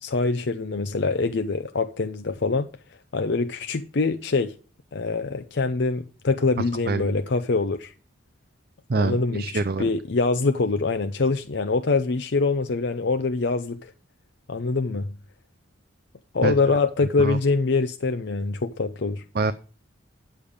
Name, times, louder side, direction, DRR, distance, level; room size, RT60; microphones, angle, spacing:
voice 1, 0.0-2.7 3.1-4.5 4.9-7.9 9.0-13.9 14.5-15.1 16.3-19.2, left 3 dB, 55° left, 0.6 m, -24 dB
voice 2, 6.6-7.1 8.9-9.9 16.4-16.5 17.2-17.4 19.3-19.5, right 3 dB, 50° right, 0.5 m, -25 dB
10.0 x 7.1 x 5.0 m
head